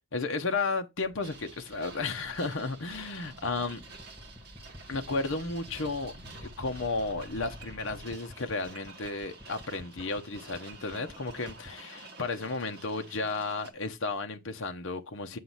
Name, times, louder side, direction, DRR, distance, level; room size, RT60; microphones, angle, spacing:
voice 1, 0.1-3.8 4.9-6.1 6.4-15.4, left 3 dB, 65° left, 0.8 m, -33 dB
sound 1, 1.0-8.0, left 1 dB, 40° left, 4.9 m, -51 dB
sound 2, 1.2-13.7, right 3 dB, 50° right, 1.4 m, -50 dB
sound 3, 3.2-11.8, left 1 dB, 10° right, 1.3 m, -50 dB
7.6 x 3.1 x 5.6 m
head